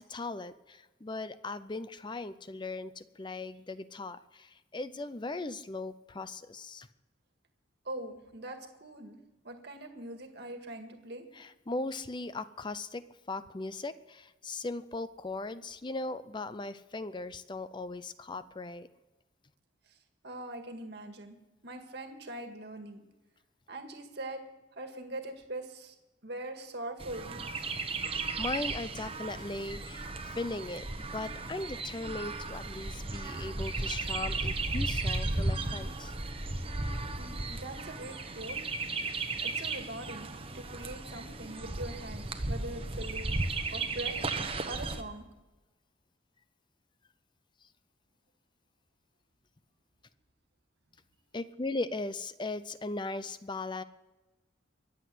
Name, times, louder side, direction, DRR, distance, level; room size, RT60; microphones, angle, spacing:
voice 1, 0.0-6.9 11.3-18.9 28.4-36.1 51.3-53.8, left 2 dB, 25° left, 13 dB, 0.5 m, -38 dB
voice 2, 7.9-9.2 9.4-11.2 19.9-20.0 20.2-21.4 21.6-23.0 23.7-24.4 24.8-26.0 26.2-27.5 37.2-38.7 39.4-43.4 43.7-44.2 44.7-45.3, right 1 dB, 60° right, 5 dB, 1.8 m, -42 dB
Chirp tweet, 27.0-45.0, right 3 dB, 30° right, 1.1 m, -35 dB
23.0 x 8.1 x 7.7 m, 1.1 s
head